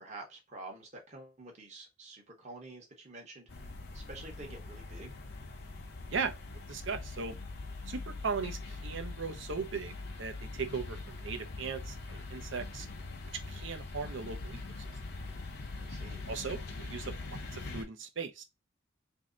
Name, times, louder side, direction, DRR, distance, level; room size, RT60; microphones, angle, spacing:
voice 1, 0.0-5.2 15.8-16.2, right 2 dB, 35° right, 1.0 m, -48 dB
sound 1, 3.5-17.8, left 3 dB, 55° left, 0.8 m, -43 dB
voice 2, 6.7-7.3 7.9-12.9 13.5-14.6 16.3-17.1 17.5-18.4, right 5 dB, 65° right, 0.6 m, -38 dB
3.1 x 2.7 x 3.7 m
head